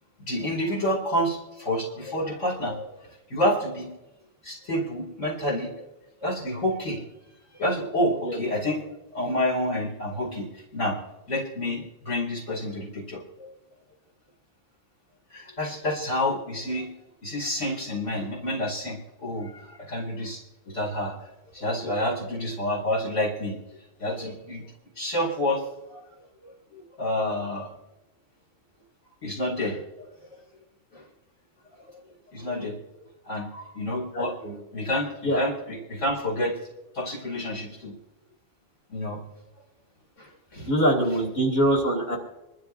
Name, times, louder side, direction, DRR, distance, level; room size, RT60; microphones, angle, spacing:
voice 1, 0.3-3.0 3.3-3.9 4.4-5.7 6.2-7.0 7.5-11.0 11.3-13.5 15.3-16.9 17.2-20.4 20.7-21.1 21.5-23.6 24.0-24.6 25.0-26.0 26.4-27.7 29.2-30.1 30.9-31.0 32.3-32.8 33.3-34.4 34.7-36.6 36.9-37.9 38.9-39.2 40.2-40.7, left 1 dB, 75° left, -3 dB, 3.0 m, -29 dB
voice 2, 34.1-34.5 35.2-35.4 40.7-42.2, right 1 dB, 50° left, -1 dB, 3.4 m, -23 dB
26.5 x 12.5 x 2.6 m, 0.98 s
omnidirectional pair, 1.3 m